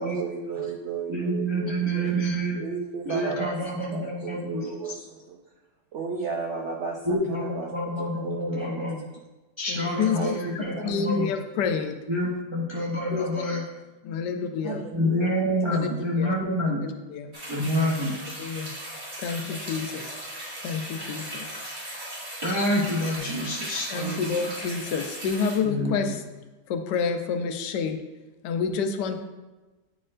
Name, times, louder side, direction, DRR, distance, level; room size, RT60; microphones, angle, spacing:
voice 1, 0.0-2.2 2.6-5.4 5.9-9.2 10.1-10.4 10.7-10.8 14.6-15.3 15.6-15.8, right 5 dB, 85° right, 2 dB, 0.6 m, -34 dB
voice 2, 1.1-2.6 3.0-4.9 7.0-9.0 9.6-11.3 12.1-13.6 14.9-16.8 17.5-18.3 22.4-24.4 25.6-26.1, equal, 40° right, -4 dB, 0.4 m, -27 dB
voice 3, 9.7-12.0 13.1-13.3 14.0-14.8 15.7-15.8 16.2-16.3 16.8-17.3 18.4-18.7 19.2-20.2 20.6-21.6 23.9-26.2 26.7-28.0 28.4-29.2, left 5 dB, 80° left, 7 dB, 1.2 m, -29 dB
sound 1, 17.3-25.6, right 1 dB, 55° right, 2.5 m, -37 dB
9.0 x 4.3 x 2.5 m, 1.2 s
omnidirectional pair, 1.9 m